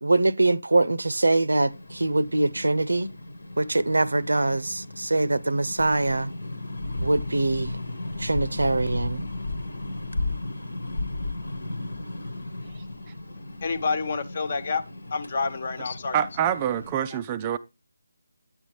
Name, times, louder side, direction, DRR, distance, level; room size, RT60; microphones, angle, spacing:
voice 1, 0.0-3.1 3.6-6.3 7.0-7.8 8.2-9.2, right 2 dB, 75° right, 0.7 m, -23 dB
sound 1, 1.7-16.9, left 2 dB, 75° left, 1.4 m, -35 dB
voice 2, 13.6-14.8 15.1-16.2, left 4 dB, 45° left, 1.1 m, -28 dB
voice 3, 16.1-17.6, right 9 dB, 20° right, 0.4 m, -26 dB
9.5 x 7.9 x 3.1 m
figure-of-eight pair, 155°, 0 cm